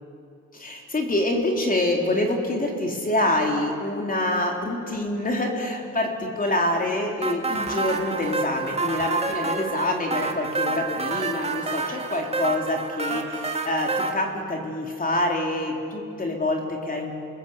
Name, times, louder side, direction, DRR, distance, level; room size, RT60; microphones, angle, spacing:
voice 1, 0.5-17.1, left 1 dB, 30° left, 1 dB, 3.7 m, -26 dB
sound 1, 7.2-14.1, right 3 dB, 20° right, 2.0 m, -28 dB
28.5 x 20.0 x 8.5 m, 2.5 s
cardioid pair, 90°, 30 cm